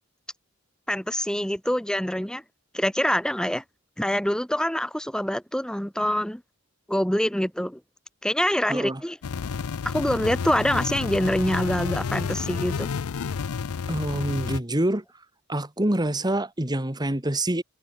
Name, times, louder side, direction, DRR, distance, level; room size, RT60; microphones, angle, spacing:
voice 1, 0.9-2.4 2.7-3.6 4.0-6.4 6.9-7.8 8.2-9.2 9.8-12.9, equal, 5° left, 1.1 m, -25 dB
voice 2, 8.7-9.0 13.9-15.0 15.5-17.6, right 1 dB, 20° right, 1.9 m, -26 dB
sound 1, 9.2-14.6, left 5 dB, 90° left, 0.5 m, -30 dB
head